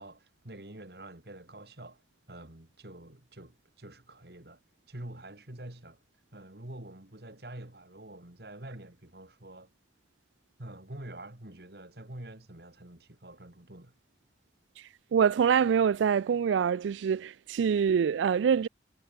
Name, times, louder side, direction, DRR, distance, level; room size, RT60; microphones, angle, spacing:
voice 1, 0.0-2.0 2.3-4.6 4.9-6.0 6.3-9.7 10.6-13.9, right 1 dB, 60° right, 2.5 m, -46 dB
voice 2, 15.1-18.7, right 7 dB, 85° right, 0.3 m, -25 dB
head